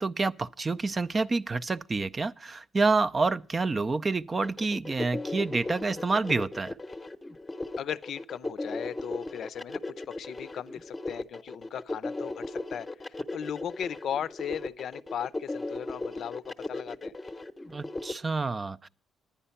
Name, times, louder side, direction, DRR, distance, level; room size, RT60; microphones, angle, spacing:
voice 1, 0.0-6.8 17.7-18.9, right 3 dB, 30° right, 0.4 m, -28 dB
sound 1, 4.4-18.1, left 2 dB, 15° left, 0.8 m, -36 dB
voice 2, 7.8-9.8 10.2-17.1, left 9 dB, 65° left, 0.5 m, -37 dB
10.0 x 10.0 x 5.6 m
cardioid pair, 90°, 0 cm